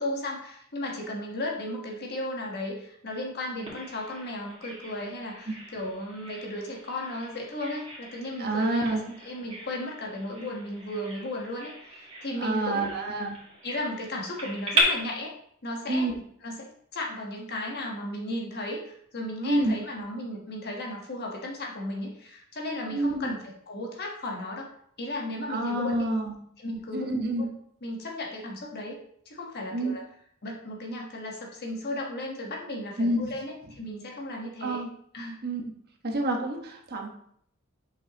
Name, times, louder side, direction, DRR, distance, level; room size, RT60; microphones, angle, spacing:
voice 1, 0.0-12.9 13.6-15.3 15.6-16.1 16.4-24.7 25.0-26.1 26.6-27.1 27.4-27.5 27.8-29.0 29.2-30.0 30.4-34.8 35.1-35.4, left 1 dB, 50° left, 0 dB, 1.3 m, -35 dB
Bird vocalization bird call bird song, 3.7-14.8, right 2 dB, 30° right, 2.3 m, -37 dB
voice 2, 8.4-9.0 12.4-13.4 15.9-16.1 19.4-19.7 22.9-23.3 25.5-26.3 26.9-27.5 29.7-30.0 33.0-33.3 34.6-34.9 35.4-35.6 36.0-37.1, right 1 dB, 50° right, 2 dB, 1.2 m, -28 dB
7.7 x 5.5 x 2.9 m, 0.66 s
head